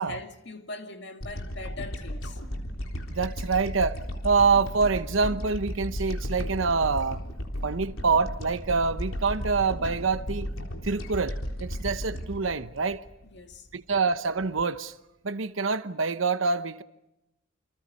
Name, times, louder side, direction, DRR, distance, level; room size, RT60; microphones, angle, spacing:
voice 1, 0.0-2.4 13.2-13.7, left 2 dB, 55° left, 2.4 m, -41 dB
sound 1, 1.2-13.7, equal, 85° left, 3.8 m, -35 dB
voice 2, 3.1-4.0 4.2-7.2 7.6-10.5 10.8-13.0 13.7-14.9 15.2-16.8, right 4 dB, 75° right, 0.9 m, -26 dB
29.0 x 26.5 x 5.4 m
head